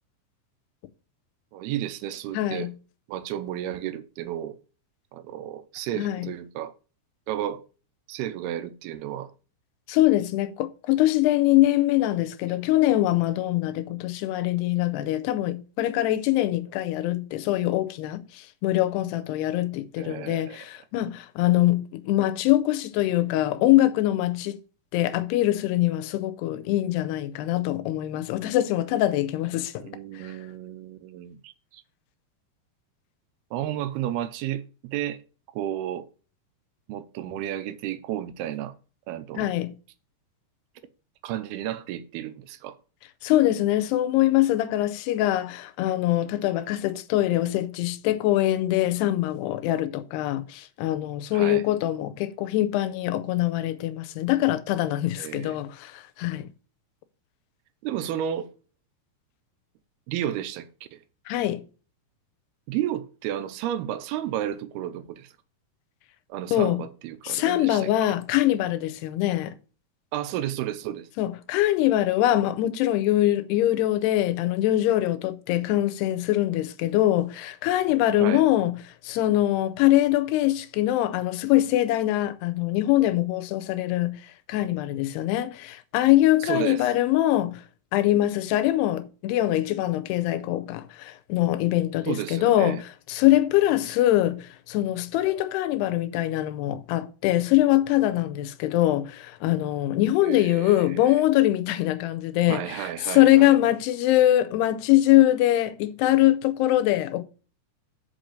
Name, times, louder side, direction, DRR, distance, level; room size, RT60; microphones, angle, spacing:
voice 1, 1.5-2.7 3.1-4.6 5.1-6.7 7.3-7.6 8.1-9.3 20.0-20.7 29.8-31.8 33.5-35.2 35.5-36.1 36.9-38.7 39.1-39.5 41.2-42.8 51.3-51.6 55.2-55.6 57.8-58.5 60.1-61.0 62.7-65.3 66.3-67.9 70.1-71.1 78.2-78.5 86.4-86.9 92.1-92.8 100.2-101.2 102.5-103.5, right 11 dB, 85° right, 2.5 m, -32 dB
voice 2, 2.3-2.7 6.0-6.3 9.9-24.6 24.9-29.8 30.2-30.4 39.4-39.7 43.2-56.5 61.3-61.6 66.5-66.8 67.2-69.5 71.2-78.8 79.0-84.2 84.5-87.6 87.9-92.8 93.1-107.2, left 14 dB, 85° left, 2.7 m, -23 dB
6.4 x 5.6 x 6.5 m
omnidirectional pair, 4.6 m